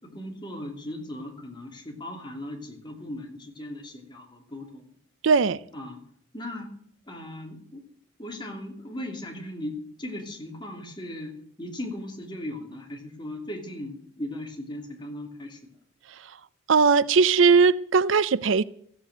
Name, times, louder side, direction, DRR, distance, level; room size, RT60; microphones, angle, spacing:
voice 1, 0.0-5.0 5.7-6.0 6.3-6.7 7.1-7.8 8.2-15.6, left 1 dB, 25° left, 3.0 m, -38 dB
voice 2, 5.2-5.6 16.2-16.3 16.7-18.6, right 5 dB, 70° right, 0.5 m, -19 dB
14.5 x 8.3 x 7.8 m
head